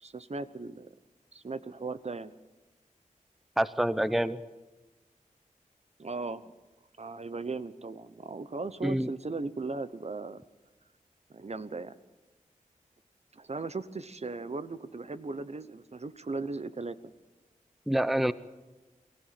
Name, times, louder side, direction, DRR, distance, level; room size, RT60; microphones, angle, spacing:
voice 1, 0.0-0.9 1.3-2.3 6.0-6.5 7.0-10.4 11.3-12.0 13.3-17.1, right 3 dB, 50° right, 13 dB, 0.9 m, -37 dB
voice 2, 3.6-4.4 8.8-9.1 17.9-18.3, right 1 dB, ahead, 15 dB, 0.6 m, -26 dB
23.0 x 15.5 x 7.6 m, 1.2 s
wide cardioid pair, 70°, 14 cm